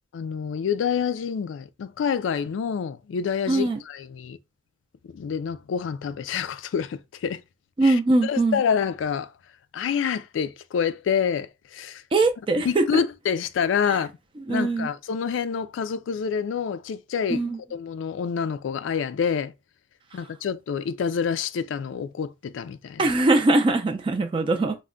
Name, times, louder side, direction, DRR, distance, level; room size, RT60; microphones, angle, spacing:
voice 1, 0.1-4.4 5.1-7.4 7.8-9.3 9.7-12.0 12.5-14.1 14.5-17.4 17.7-19.5 20.1-23.0, left 7 dB, 85° left, 0.3 m, -27 dB
voice 2, 3.5-3.8 7.8-8.6 12.1-13.0 14.5-14.9 17.3-17.6 23.0-24.8, right 2 dB, 25° right, 0.3 m, -21 dB
2.2 x 2.1 x 3.6 m
head